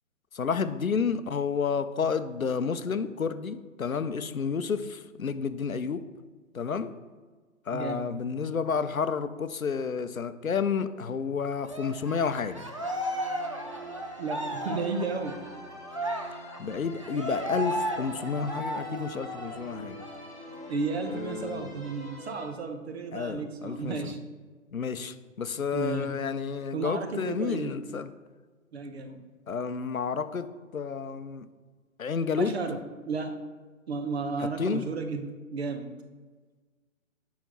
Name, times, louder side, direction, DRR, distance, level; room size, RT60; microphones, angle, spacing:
voice 1, 0.3-6.1 6.5-7.0 7.7-12.7 16.6-20.0 21.1-21.7 23.1-24.1 24.7-28.1 29.5-31.5 32.0-32.5 34.4-34.8, left 6 dB, 80° left, 11 dB, 0.7 m, -30 dB
voice 2, 7.7-8.1 14.2-15.4 20.7-24.2 24.9-25.0 25.7-26.1 26.7-27.8 28.7-29.2 32.4-33.4 33.9-35.9, right 4 dB, 50° right, 7 dB, 1.0 m, -33 dB
Cheering, 11.6-19.6 20.0-20.2 20.5-21.5, equal, 25° right, 0.4 m, -35 dB
sound 1, 12.0-22.5, equal, 85° right, 2.6 m, -45 dB
7.2 x 5.2 x 5.9 m, 1.4 s
figure-of-eight pair, 130°, 41 cm